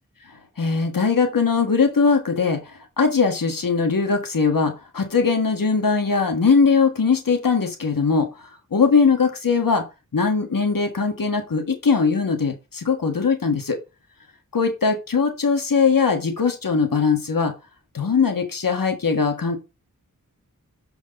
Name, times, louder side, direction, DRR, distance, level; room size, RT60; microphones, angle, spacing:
voice 1, 0.6-9.8 10.1-13.8 14.5-17.5 17.9-19.6, left 5 dB, 80° left, 5 dB, 1.5 m, -20 dB
7.3 x 4.5 x 5.2 m, 0.27 s
wide cardioid pair, 65°, 33 cm